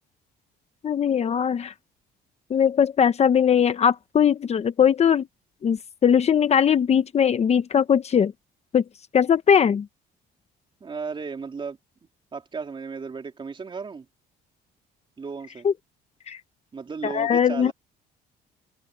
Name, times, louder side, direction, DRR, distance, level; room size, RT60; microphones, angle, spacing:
voice 1, 0.8-1.7 2.5-5.3 5.6-8.3 8.7-8.8 9.1-9.9 15.6-15.7 16.3-16.4 17.0-17.7, left 8 dB, 40° left, 1.0 m, -20 dB
voice 2, 10.8-11.8 12.3-14.1 15.2-15.7 16.7-17.7, right 5 dB, 30° right, 3.6 m, -34 dB
cardioid pair, 110°, 17 cm